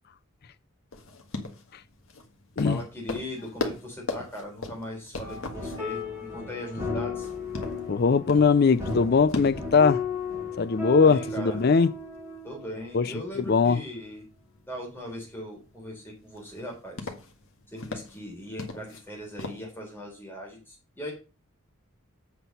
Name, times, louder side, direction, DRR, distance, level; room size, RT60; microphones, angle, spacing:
sound 1, 0.9-19.7, left 2 dB, 70° left, 1.6 m, -41 dB
voice 1, 2.6-7.3 10.9-11.6 12.4-14.2 14.7-17.1 17.7-21.1, equal, 10° left, 3.8 m, -39 dB
sound 2, 5.2-12.9 13.2-13.3, left 4 dB, 15° right, 3.2 m, -35 dB
voice 2, 7.9-10.0 10.6-11.9 12.9-13.1 13.4-13.8, left 5 dB, 45° left, 0.4 m, -21 dB
8.1 x 6.0 x 5.4 m
head